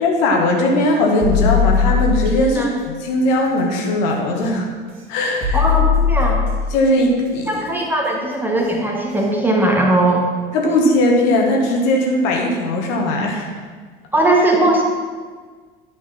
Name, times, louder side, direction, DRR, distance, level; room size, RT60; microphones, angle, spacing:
voice 1, 0.0-4.7 5.1-5.6 6.7-7.5 10.5-13.5, left 1 dB, 55° left, 0 dB, 1.6 m, -18 dB
sound 1, 1.2-2.5 4.3-4.5 5.4-6.7 8.6-8.7 9.2-9.3, left 6 dB, 50° right, 2.6 m, -18 dB
voice 2, 5.5-6.4 7.5-10.3 14.1-14.8, right 1 dB, 5° right, -1 dB, 1.6 m, -18 dB
11.0 x 5.3 x 5.5 m, 1.5 s
figure-of-eight pair, 70°, 29 cm